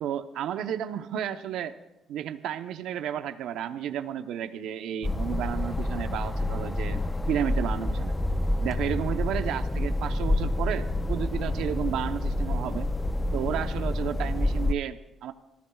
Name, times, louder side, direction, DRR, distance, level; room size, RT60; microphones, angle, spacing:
voice 1, 0.0-1.8 2.1-8.2 8.6-12.9 13.3-15.3, right 10 dB, 90° right, 8 dB, 0.8 m, -32 dB
sound 1, 5.0-14.7, left 1 dB, 15° left, 0.6 m, -28 dB
26.5 x 16.0 x 2.4 m, 0.96 s
cardioid pair, 115°, 0 cm